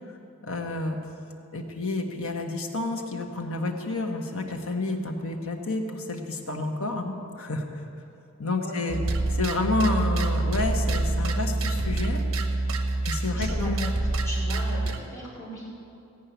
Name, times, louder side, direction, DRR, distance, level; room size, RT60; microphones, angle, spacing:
voice 1, 0.4-1.0 1.5-7.8 8.4-9.0 9.3-12.2 13.0-13.9, left 2 dB, 75° left, 3 dB, 1.4 m, -30 dB
voice 2, 8.6-9.3 13.3-13.9 14.2-15.7, left 1 dB, 15° left, -9 dB, 4.0 m, -38 dB
sound 1, 8.9-15.0, right 2 dB, 80° right, 1.1 m, -26 dB
16.5 x 5.5 x 9.2 m, 2.6 s
head